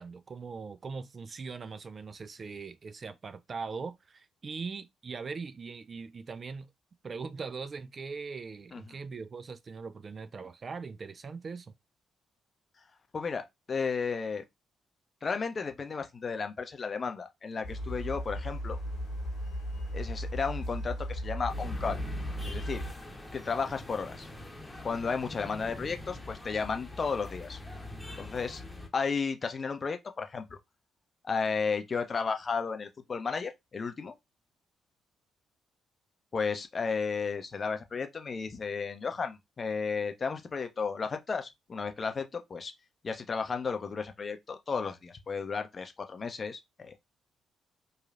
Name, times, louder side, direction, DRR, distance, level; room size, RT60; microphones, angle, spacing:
voice 1, 0.0-6.7 7.0-11.7, right 5 dB, 45° right, 0.3 m, -41 dB
voice 2, 13.1-14.4 15.2-18.8 19.9-22.0 22.5-22.8 23.3-24.3 24.8-27.6 28.2-28.6 28.9-30.6 31.2-34.1 36.3-42.7 43.0-47.0, left 5 dB, 40° left, 0.5 m, -33 dB
sound 1, 17.6-22.9, equal, 70° left, 0.9 m, -36 dB
sound 2, 21.5-28.9, left 2 dB, 5° left, 1.0 m, -44 dB
3.0 x 2.3 x 2.4 m
figure-of-eight pair, 40°, 0 cm